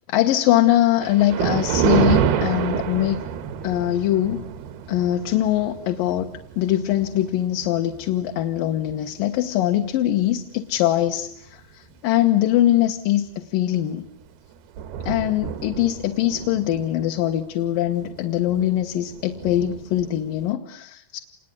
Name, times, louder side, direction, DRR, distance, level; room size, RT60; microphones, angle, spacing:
voice 1, 0.1-3.2 3.6-4.5 4.9-14.0 15.1-21.2, left 13 dB, 70° left, 5 dB, 2.8 m, -22 dB
Thunder, 1.0-9.6 10.1-10.3 11.0-11.1 11.5-11.6 13.7-13.9 14.3-14.4 14.5-20.5, right 8 dB, 80° right, 3.4 m, -29 dB
27.5 x 21.0 x 9.8 m, 0.68 s
omnidirectional pair, 4.4 m